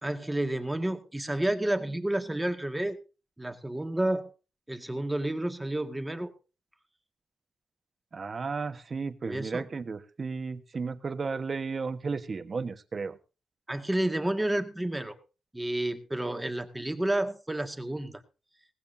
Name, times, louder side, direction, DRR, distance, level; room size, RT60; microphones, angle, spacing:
voice 1, 0.0-3.0 3.4-4.3 4.7-6.3 9.3-9.7 13.7-15.2 15.5-18.2, right 1 dB, 10° right, 6 dB, 2.0 m, -30 dB
voice 2, 8.1-13.2, right 4 dB, 40° right, 10 dB, 1.4 m, -34 dB
18.5 x 16.0 x 2.8 m, 0.33 s
cardioid pair, 110°, 0 cm